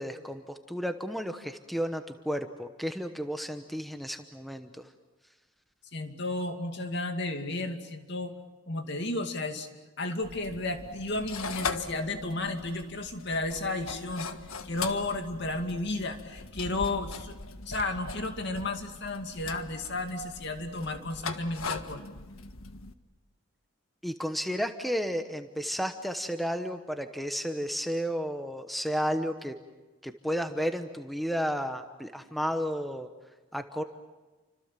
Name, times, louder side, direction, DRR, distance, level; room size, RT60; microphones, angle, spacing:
voice 1, 0.0-4.8 24.0-29.5 30.0-33.1 33.5-33.8, equal, ahead, 7 dB, 1.0 m, -32 dB
voice 2, 5.9-8.3 8.7-9.7 10.0-17.4 17.7-22.1, left 2 dB, 55° left, 5 dB, 2.5 m, -33 dB
sound 1, 10.2-22.9, left 4 dB, 85° left, 1.5 m, -40 dB
30.0 x 26.0 x 7.6 m, 1.2 s
head